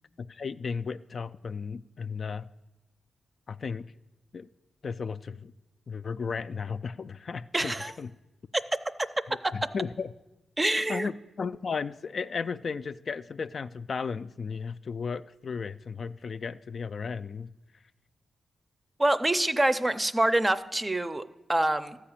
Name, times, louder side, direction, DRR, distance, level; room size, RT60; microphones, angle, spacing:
voice 1, 0.2-2.5 3.5-3.9 4.3-4.5 4.8-5.5 5.9-8.1 9.3-10.1 10.9-17.5, left 5 dB, 60° left, 12 dB, 0.3 m, -35 dB
voice 2, 7.5-7.9 9.4-9.5 10.6-11.1 19.0-22.0, right 1 dB, 20° right, 12 dB, 0.5 m, -26 dB
13.5 x 4.9 x 8.8 m, 1.0 s
cardioid pair, 75°, 0 cm